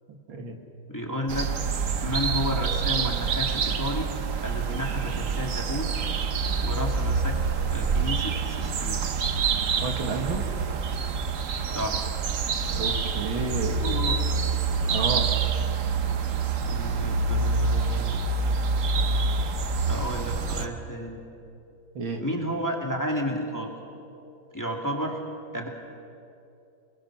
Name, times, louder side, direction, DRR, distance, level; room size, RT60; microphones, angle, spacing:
voice 1, 0.9-1.5 2.0-4.1 4.4-5.9 6.6-7.4 7.7-9.0 11.7-12.1 13.8-14.4 16.7-18.2 19.9-21.2 22.2-23.8 24.5-25.2 25.5-25.7, equal, 10° left, 0 dB, 2.1 m, -32 dB
sound 1, 1.3-20.7, right 5 dB, 50° right, 1.1 m, -26 dB
voice 2, 9.8-10.4 12.7-13.8 14.8-15.3 21.9-22.2, right 3 dB, 80° right, 3 dB, 2.7 m, -31 dB
27.5 x 21.0 x 6.1 m, 2.7 s
omnidirectional pair, 2.2 m